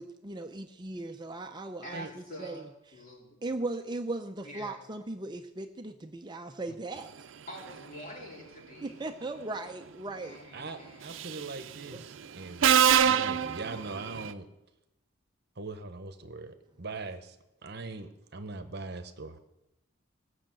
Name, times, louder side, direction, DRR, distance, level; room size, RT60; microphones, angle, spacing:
voice 1, 0.0-2.7 3.4-7.1 8.8-10.4 11.9-12.0, right 2 dB, 20° right, 5 dB, 0.5 m, -38 dB
voice 2, 1.8-3.5 4.4-4.8 7.5-9.0 10.2-11.3, equal, 45° left, -2 dB, 3.8 m, -46 dB
voice 3, 10.5-12.6 13.0-14.5 15.6-17.4 17.6-19.4, right 3 dB, 55° right, 9 dB, 1.0 m, -41 dB
Subway metro underground, 11.1-11.5 12.6-14.3, right 8 dB, 70° right, 0.5 m, -24 dB
17.0 x 6.4 x 7.7 m, 0.92 s
head